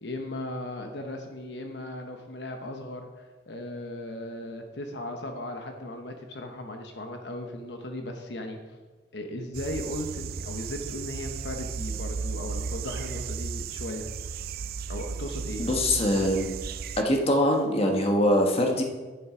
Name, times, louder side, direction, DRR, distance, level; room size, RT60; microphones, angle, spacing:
voice 1, 0.0-8.6 9.1-14.1 14.9-15.7, left 1 dB, 70° left, 4 dB, 1.0 m, -37 dB
sound 1, 9.5-17.0, right 5 dB, 55° right, 0.4 m, -35 dB
voice 2, 15.6-16.6 17.0-18.8, left 1 dB, 35° left, 2 dB, 1.3 m, -23 dB
10.5 x 7.0 x 4.9 m, 1.3 s
head